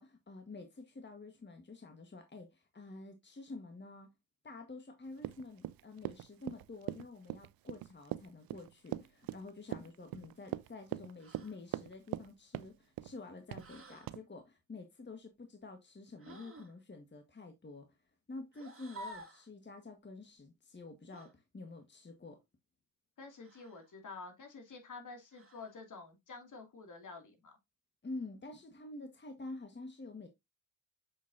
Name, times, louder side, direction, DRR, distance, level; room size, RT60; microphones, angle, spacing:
voice 1, 0.0-4.1 4.4-18.0 18.3-22.4 28.0-30.3, left 3 dB, 30° left, 1.7 m, -49 dB
Run, 5.2-12.3 12.5-13.1 13.5-13.7 14.1-14.2, right 16 dB, 75° right, 0.5 m, -41 dB
sound 1, 11.2-11.6 13.6-14.1 16.2-16.7 18.5-19.5 21.1-21.3 23.4-23.9 25.3-25.8, right 1 dB, 40° right, 2.5 m, -51 dB
voice 2, 23.2-27.5, left 4 dB, 55° left, 2.7 m, -49 dB
6.8 x 6.2 x 2.8 m
supercardioid pair, 50°, 36 cm